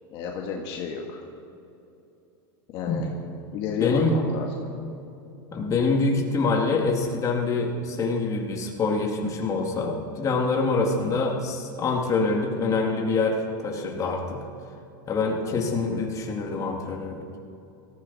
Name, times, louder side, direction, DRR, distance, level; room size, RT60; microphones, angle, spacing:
voice 1, 0.1-1.2 2.7-3.1 3.5-4.5 15.9-16.1, left 5 dB, 45° left, 0 dB, 1.7 m, -31 dB
voice 2, 3.8-4.2 5.5-14.5 15.1-17.4, left 3 dB, 30° left, 1 dB, 2.2 m, -25 dB
18.0 x 14.5 x 4.2 m, 2.8 s
supercardioid pair, 130°, 12 cm